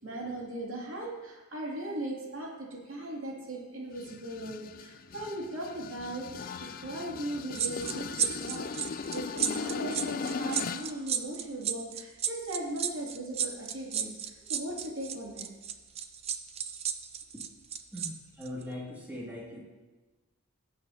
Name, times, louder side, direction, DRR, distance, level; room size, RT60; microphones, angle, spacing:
voice 1, 0.0-14.1 14.5-15.5, right 1 dB, 70° right, -3 dB, 2.5 m, -38 dB
sound 1, 4.0-11.0, left 5 dB, 40° left, 0.3 m, -38 dB
sound 2, 7.5-18.1 18.4-18.6, right 8 dB, 30° right, 0.4 m, -33 dB
voice 2, 17.9-19.6, left 1 dB, 10° right, -5 dB, 2.1 m, -40 dB
16.5 x 7.5 x 2.7 m, 1.2 s
head